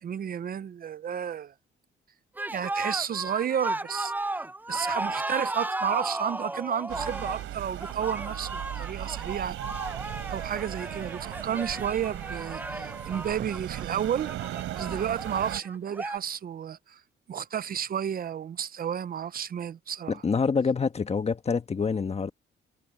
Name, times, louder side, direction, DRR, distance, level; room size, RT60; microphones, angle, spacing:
voice 1, 0.0-1.5 2.5-4.1 4.7-9.6 10.3-14.3 14.8-17.0 17.3-20.2, right 8 dB, 50° right, 0.6 m, -32 dB
sound 1, 2.4-16.2, right 2 dB, 10° right, 0.5 m, -35 dB
sound 2, 6.9-15.6, right 13 dB, 85° right, 4.8 m, -37 dB
voice 2, 20.1-22.3, left 5 dB, 30° left, 1.3 m, -26 dB
cardioid pair, 90°, 20 cm